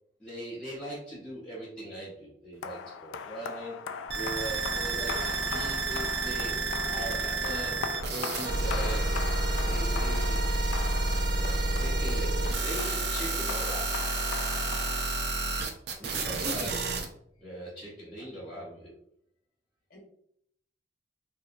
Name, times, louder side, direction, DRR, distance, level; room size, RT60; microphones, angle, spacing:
voice 1, 0.2-3.8 4.1-9.3 9.6-10.4 10.7-10.8 11.3-14.1 16.0-16.9 17.4-18.9, right 1 dB, 5° left, -10 dB, 0.7 m, -40 dB
sound 1, 2.6-15.6, left 6 dB, 85° left, 0.3 m, -39 dB
sound 2, 4.1-17.1, right 2 dB, 60° right, 0.5 m, -30 dB
sound 3, 4.8-14.5, right 2 dB, 45° right, 0.9 m, -49 dB
voice 2, 16.4-16.8 19.9-20.0, left 2 dB, 50° left, -1 dB, 0.9 m, -39 dB
3.3 x 2.7 x 2.4 m, 0.70 s
head